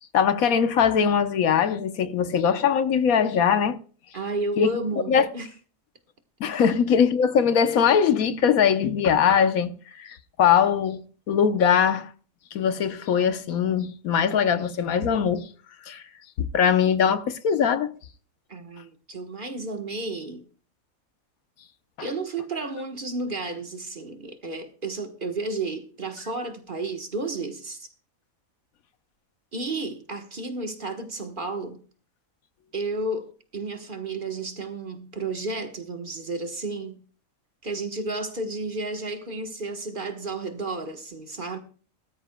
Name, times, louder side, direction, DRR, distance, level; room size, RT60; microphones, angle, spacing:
voice 1, 0.1-3.8 4.6-4.7 5.1-5.3 6.4-12.1 12.5-15.5 15.9-16.0 16.4-17.9, left 7 dB, 80° left, 1.3 m, -21 dB
voice 2, 4.1-5.5 18.5-20.4 22.0-27.9 29.5-31.8 32.7-37.0 37.6-41.6, right 2 dB, 40° right, 1.4 m, -32 dB
18.5 x 13.5 x 2.2 m
omnidirectional pair, 1.5 m